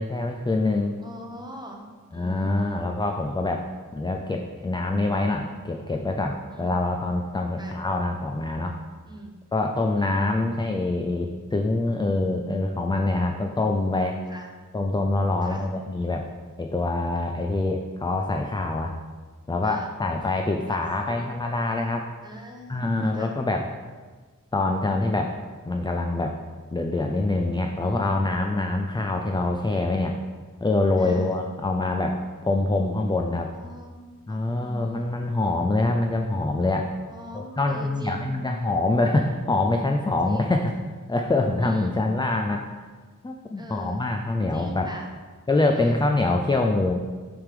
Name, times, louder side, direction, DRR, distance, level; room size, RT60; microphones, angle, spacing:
voice 1, 0.0-0.9 2.1-3.7 3.9-8.8 9.5-14.2 14.7-16.3 16.6-19.0 19.5-22.1 22.7-23.7 24.5-25.3 25.7-26.4 26.7-30.2 30.6-33.5 34.3-36.9 37.3-40.7 41.1-42.7 43.2-44.9 45.5-46.9, left 2 dB, 15° left, 3 dB, 0.4 m, -25 dB
voice 2, 1.0-1.8 2.1-2.9 6.5-6.8 7.6-7.7 9.1-9.3 10.0-10.3 14.3-14.5 15.4-15.6 19.6-19.9 20.7-21.3 22.2-22.8 23.1-23.3 27.8-28.0 31.0-31.3 33.4-34.0 34.3-35.0 37.1-38.3 40.2-40.5 41.6-42.0 43.6-44.0 44.5-45.1 45.7-46.0, equal, 15° right, 0 dB, 1.0 m, -42 dB
6.4 x 3.5 x 4.9 m, 1.4 s
wide cardioid pair, 60°, 33 cm